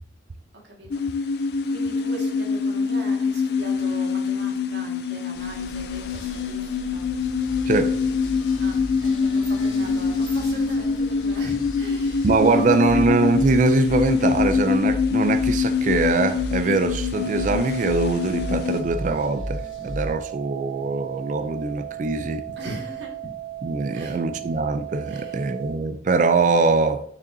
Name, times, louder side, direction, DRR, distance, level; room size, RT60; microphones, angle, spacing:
voice 1, 0.5-7.1 8.6-12.9 22.5-23.2 23.9-24.6 25.0-25.6, right 1 dB, 60° right, 1.8 m, -41 dB
sound 1, 0.9-18.8, left 5 dB, 55° left, 0.4 m, -24 dB
sound 2, 5.3-20.1, left 1 dB, 85° left, 1.4 m, -35 dB
voice 2, 7.7-8.0 12.2-22.4 23.6-27.0, right 3 dB, 40° right, 0.4 m, -22 dB
sound 3, 17.1-25.7, right 13 dB, 10° left, 2.3 m, -36 dB
6.7 x 6.2 x 2.7 m
head